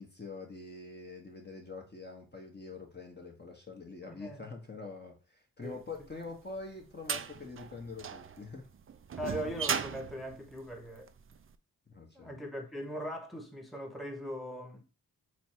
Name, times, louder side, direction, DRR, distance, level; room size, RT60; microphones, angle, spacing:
voice 1, 0.0-8.7 11.9-12.4, left 3 dB, 25° left, 0.9 m, -45 dB
voice 2, 4.2-4.5 5.6-5.8 9.2-11.1 12.1-14.8, equal, ahead, 1.0 m, -40 dB
sound 1, 6.0-11.4, right 7 dB, 35° right, 0.4 m, -37 dB
4.2 x 2.3 x 4.3 m
cardioid pair, 40°, 40 cm